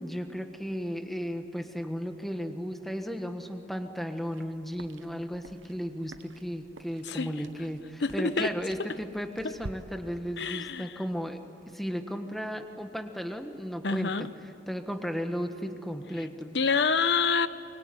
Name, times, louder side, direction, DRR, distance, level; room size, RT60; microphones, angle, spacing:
voice 1, 0.0-11.4 11.7-14.3 14.7-16.5, equal, ahead, 6 dB, 1.4 m, -35 dB
sound 1, 4.2-9.7, right 2 dB, 85° right, 1.2 m, -49 dB
voice 2, 8.0-8.5 9.4-9.5 10.4-11.0 13.8-14.3 16.5-17.5, left 5 dB, 60° left, 13 dB, 1.0 m, -27 dB
25.0 x 23.5 x 9.8 m, 2.5 s
head